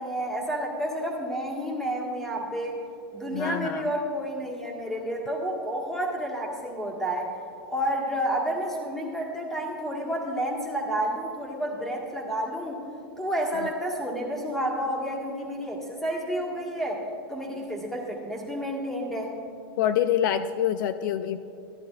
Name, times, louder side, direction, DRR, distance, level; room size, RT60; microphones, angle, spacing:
voice 1, 0.0-2.8 3.1-7.3 7.7-12.8 13.2-17.0 17.3-19.4, right 1 dB, 5° left, -3 dB, 1.7 m, -30 dB
voice 2, 3.3-3.9 13.6-13.7 19.8-21.4, left 10 dB, 55° left, 10 dB, 0.4 m, -26 dB
14.0 x 10.5 x 2.5 m, 2.7 s
hypercardioid pair, 135°, 12 cm